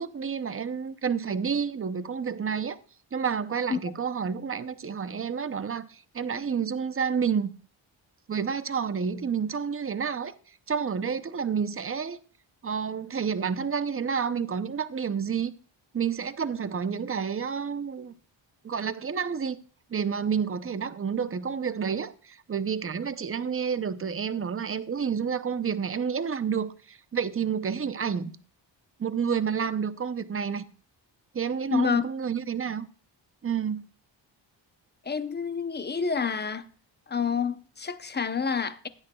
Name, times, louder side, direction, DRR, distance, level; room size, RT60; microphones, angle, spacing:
voice 1, 0.0-2.8 3.1-7.5 8.3-10.4 10.7-12.2 12.6-15.5 15.9-18.1 18.6-19.6 19.9-28.4 29.0-30.6 31.3-32.9 33.4-33.8, right 6 dB, 30° right, 0.7 m, -29 dB
voice 2, 31.7-32.0 35.1-36.6 37.1-38.9, left 6 dB, 20° left, 0.7 m, -28 dB
16.0 x 11.5 x 2.3 m
wide cardioid pair, 130°, 46 cm